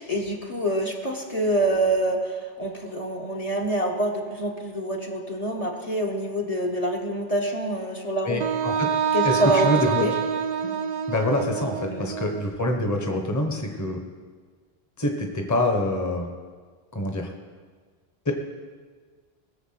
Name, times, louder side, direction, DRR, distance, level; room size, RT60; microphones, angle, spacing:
voice 1, 0.0-8.4 9.1-10.2 10.6-10.7 11.9-12.1, right 1 dB, 35° left, 2 dB, 1.3 m, -26 dB
voice 2, 8.2-8.9 9.2-10.0 11.1-14.0 15.0-16.3 16.9-17.3 18.2-18.3, left 1 dB, 15° left, 3 dB, 1.2 m, -26 dB
Wind instrument woodwind instrument, 8.4-12.4, right 7 dB, 50° right, 0.7 m, -26 dB
19.5 x 7.2 x 5.9 m, 1.5 s
omnidirectional pair, 1.0 m